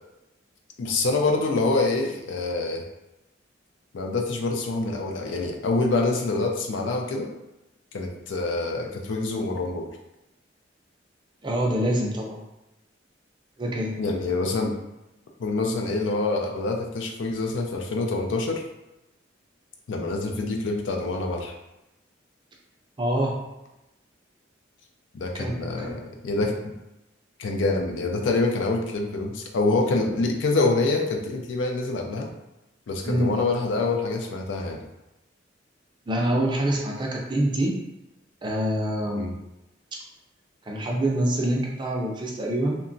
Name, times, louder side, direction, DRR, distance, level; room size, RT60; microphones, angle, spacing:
voice 1, 0.8-2.8 3.9-7.3 7.9-9.9 14.0-14.7 15.4-18.6 19.9-21.5 25.1-26.5 27.4-32.3 32.9-34.8 39.1-39.3, left 3 dB, 80° left, 2 dB, 0.4 m, -26 dB
voice 2, 11.4-12.4 13.6-13.9 23.0-23.4 25.3-26.1 33.0-33.4 36.1-37.8 38.4-39.3 40.7-42.8, right 1 dB, 25° right, -1 dB, 0.4 m, -25 dB
2.8 x 2.2 x 2.5 m, 0.95 s
head